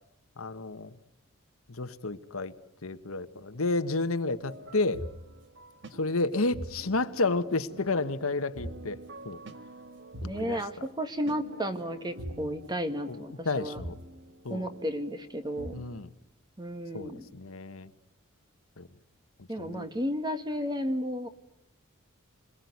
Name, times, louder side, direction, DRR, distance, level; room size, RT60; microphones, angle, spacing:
voice 1, 0.4-0.9 1.7-2.5 2.8-5.0 5.9-9.0 9.2-9.4 10.2-10.6 13.1-13.2 13.4-13.9 14.4-14.7 15.7-16.1 16.9-17.9 18.8-18.9 19.6-19.9, left 3 dB, 85° left, 10 dB, 1.3 m, -31 dB
sound 1, 4.4-16.0, right 1 dB, 55° right, 1.6 m, -45 dB
voice 2, 10.2-13.8 14.5-15.7 16.6-17.3 19.5-21.3, equal, 20° right, 9 dB, 1.7 m, -33 dB
28.5 x 21.5 x 9.5 m, 0.86 s
head